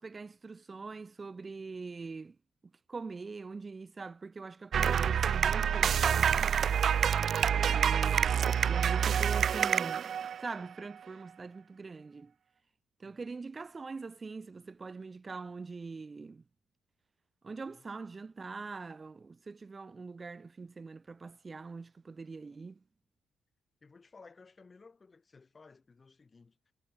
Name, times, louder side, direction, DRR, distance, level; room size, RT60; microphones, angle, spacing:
voice 1, 0.0-2.4 2.9-6.7 7.7-12.3 13.0-16.4 17.4-22.8, right 4 dB, 30° right, 2.0 m, -43 dB
sound 1, 4.7-10.7, right 8 dB, 55° right, 0.3 m, -27 dB
voice 2, 23.8-26.7, left 4 dB, 30° left, 5.3 m, -58 dB
cardioid pair, 90°, 0 cm